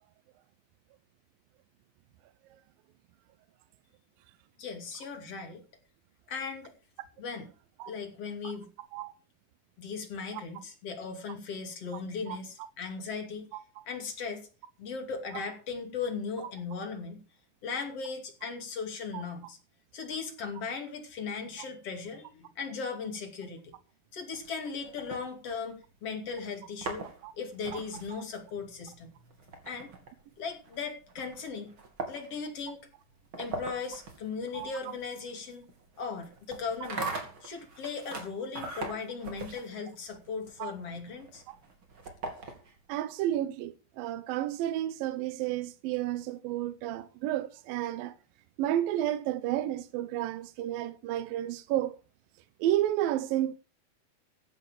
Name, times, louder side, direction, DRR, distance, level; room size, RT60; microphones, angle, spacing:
voice 1, 4.6-5.6 6.3-6.7 7.2-7.5 7.9-8.7 9.8-13.5 13.9-14.4 14.8-17.2 17.6-19.6 19.9-23.7 24.1-27.1 27.4-29.1 29.7-29.9 30.4-31.7 32.1-32.8 33.4-35.6 36.0-37.1 37.4-41.4, left 5 dB, 45° left, 3.3 m, -37 dB
sound 1, 24.3-25.9 26.6-42.9, right 3 dB, 35° right, 3.1 m, -42 dB
voice 2, 42.9-48.2 48.6-52.0 52.6-53.5, right 13 dB, 75° right, 2.4 m, -31 dB
15.0 x 10.0 x 4.8 m
omnidirectional pair, 4.4 m